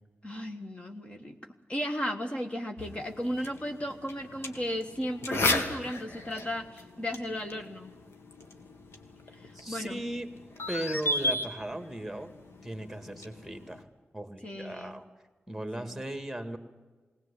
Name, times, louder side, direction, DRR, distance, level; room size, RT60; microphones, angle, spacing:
voice 1, 0.2-1.4 1.7-7.9 9.4-10.0 14.4-15.0 15.8-16.0, equal, 25° left, 4 dB, 1.5 m, -35 dB
sound 1, 2.8-13.8, left 2 dB, 75° left, 2.1 m, -36 dB
voice 2, 9.5-10.3 10.7-12.3 12.6-13.9 14.1-15.1 15.5-16.6, right 1 dB, 5° right, 7 dB, 2.0 m, -37 dB
20.5 x 18.5 x 8.4 m, 1.3 s
wide cardioid pair, 105°, 4 cm